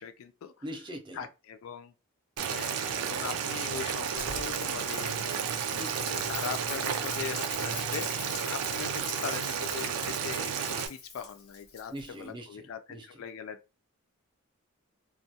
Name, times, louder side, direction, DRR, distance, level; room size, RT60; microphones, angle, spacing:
voice 1, 0.0-0.5 1.2-1.9 2.5-5.5 6.1-8.1 8.5-13.6, left 7 dB, 65° left, 0.3 m, -40 dB
voice 2, 0.6-1.3 5.8-6.1 11.9-13.2, equal, 20° right, 0.4 m, -42 dB
Boiling, 2.4-10.9, right 7 dB, 90° right, 0.4 m, -32 dB
Rain, 4.1-12.2, left 4 dB, 90° left, 0.8 m, -43 dB
2.2 x 2.1 x 2.7 m
head